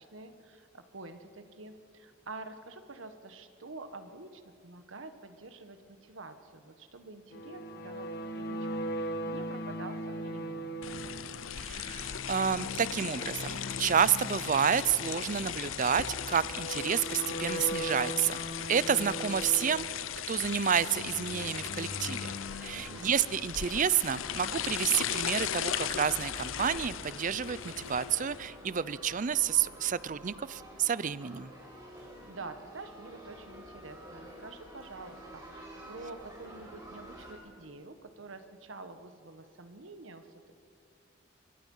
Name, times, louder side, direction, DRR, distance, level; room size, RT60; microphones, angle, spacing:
voice 1, 0.0-10.8 22.7-23.2 32.0-40.5, right 3 dB, 80° right, 9 dB, 1.4 m, -47 dB
sound 1, 7.3-23.0, equal, 55° left, 1.5 m, -40 dB
sound 2, 10.8-28.5, left 9 dB, 85° left, 0.7 m, -37 dB
voice 2, 11.6-18.4 18.7-19.8 20.3-22.3 22.6-31.5, right 8 dB, 40° right, 18 dB, 0.5 m, -30 dB
sound 3, 21.1-37.3, equal, 20° right, 5.1 m, -49 dB
24.0 x 23.5 x 5.6 m, 2.4 s
head